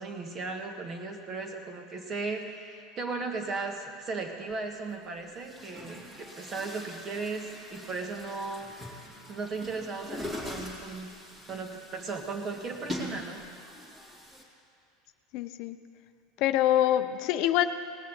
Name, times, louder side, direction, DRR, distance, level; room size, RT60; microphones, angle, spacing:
voice 1, 0.0-8.7 9.3-11.1 11.5-13.4, right 3 dB, 30° right, 4 dB, 1.6 m, -36 dB
Chatter / Gurgling / Tap, 4.5-4.6 5.3-14.4, left 1 dB, 15° right, 2.4 m, -42 dB
voice 2, 15.3-15.8 16.4-17.6, left 12 dB, 55° left, 10 dB, 0.6 m, -25 dB
18.5 x 6.7 x 8.0 m, 2.5 s
supercardioid pair, 135°, 0 cm